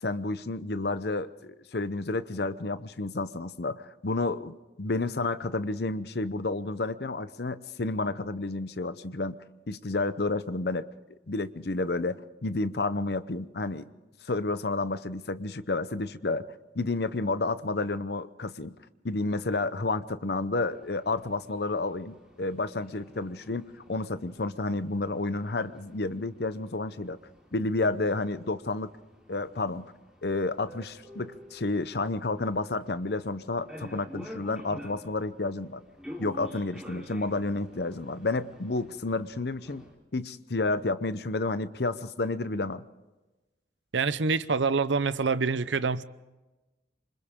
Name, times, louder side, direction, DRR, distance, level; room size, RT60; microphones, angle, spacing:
voice 1, 0.0-9.4 9.7-10.9 11.3-13.9 14.2-16.5 16.7-18.7 19.0-27.2 27.5-28.9 29.3-29.8 30.2-35.8 36.2-39.8 40.1-42.8, left 3 dB, 55° left, 14 dB, 0.8 m, -30 dB
sound 1, 20.5-39.9, equal, 5° right, 3.6 m, -49 dB
voice 2, 43.9-46.0, right 4 dB, 80° right, 15 dB, 0.7 m, -26 dB
27.5 x 25.5 x 3.7 m, 1.1 s
head